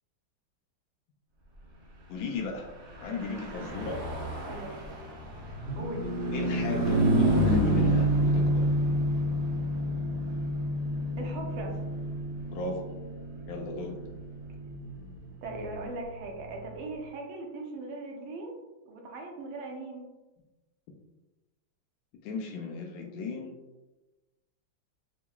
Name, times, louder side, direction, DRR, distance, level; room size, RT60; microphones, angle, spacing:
voice 1, 2.1-2.7 3.0-4.0 6.3-8.7 12.5-12.8 13.5-14.0 22.2-23.5, left 3 dB, 80° left, 1 dB, 1.3 m, -36 dB
Car passing by / Truck, 2.8-16.5, right 1 dB, 65° right, 0.7 m, -29 dB
voice 2, 4.4-4.8 5.7-6.1 11.2-11.8 15.4-18.6 18.8-20.0, right 2 dB, 85° right, 1 dB, 1.6 m, -39 dB
5.0 x 2.8 x 2.3 m, 1.1 s
omnidirectional pair, 2.2 m